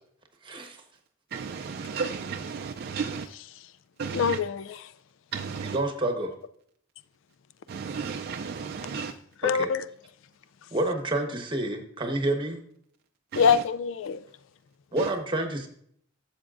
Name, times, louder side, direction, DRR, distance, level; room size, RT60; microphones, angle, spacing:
voice 1, 0.4-0.8 5.6-6.3 9.6-9.7 10.7-12.6 14.9-15.7, right 2 dB, 25° right, 1.1 m, -28 dB
voice 2, 1.3-3.3 4.0-4.4 5.3-5.8 7.7-9.2 13.3-13.6 15.0-15.1, right 5 dB, 50° right, 0.4 m, -33 dB
voice 3, 4.1-4.8 9.4-9.9 13.4-14.3, left 6 dB, 65° left, 0.3 m, -24 dB
12.0 x 7.3 x 2.5 m
head